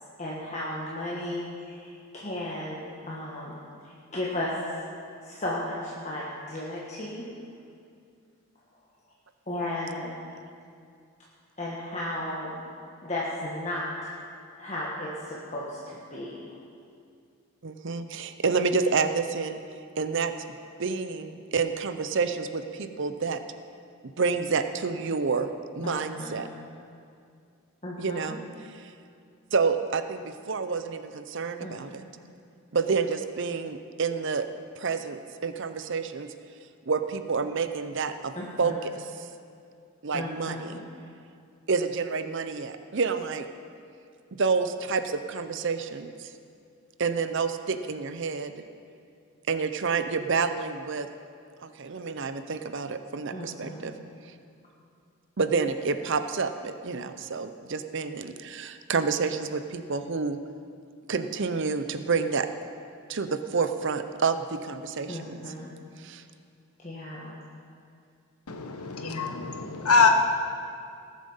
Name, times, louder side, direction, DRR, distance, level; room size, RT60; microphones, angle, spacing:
voice 1, 0.2-4.5 5.2-7.2 9.5-10.1 11.6-12.6 13.0-14.1 14.6-16.4 25.8-26.5 27.8-28.4 31.6-31.7 38.3-38.8 40.1-40.8 53.3-53.9 65.1-65.7 66.8-67.3, left 1 dB, 30° left, -6 dB, 1.4 m, -35 dB
voice 2, 17.6-19.6 20.0-20.3 20.8-23.4 24.2-25.5 25.8-26.5 28.0-28.9 29.5-32.0 32.7-34.5 34.7-36.3 36.9-39.3 40.0-40.7 41.7-43.5 44.4-46.3 47.0-48.6 49.5-51.1 51.6-53.9 55.4-60.4 61.1-62.5 63.1-65.4 66.0-66.2, right 5 dB, 55° right, 9 dB, 0.6 m, -29 dB
voice 3, 68.5-70.1, left 4 dB, 85° left, 5 dB, 1.2 m, -23 dB
19.0 x 7.5 x 5.6 m, 2.4 s
head